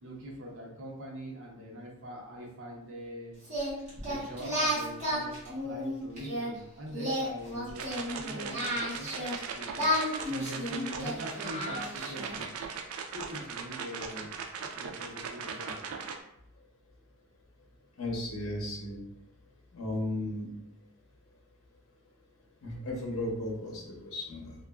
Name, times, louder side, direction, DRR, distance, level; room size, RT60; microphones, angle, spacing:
voice 1, 0.0-3.3 4.0-9.9 10.3-12.5 13.1-14.4 14.7-15.8, equal, 65° right, -2 dB, 0.7 m, -43 dB
Singing, 3.4-6.5 6.9-9.4 9.7-12.3, equal, 35° right, 1.1 m, -32 dB
sound 1, 7.7-16.2, right 6 dB, 80° right, 0.3 m, -39 dB
voice 2, 18.0-19.0 19.7-20.5 22.6-24.6, left 1 dB, 75° left, -1 dB, 0.7 m, -35 dB
2.9 x 2.3 x 2.3 m, 0.76 s
head